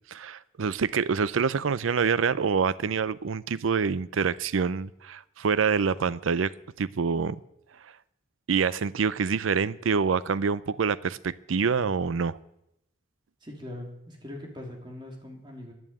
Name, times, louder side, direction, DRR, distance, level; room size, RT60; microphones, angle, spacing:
voice 1, 0.1-6.5 6.8-7.4 8.5-12.4, right 5 dB, 90° right, 0.5 m, -26 dB
voice 2, 13.4-15.7, left 1 dB, 25° right, 3.1 m, -41 dB
11.0 x 11.0 x 9.0 m
head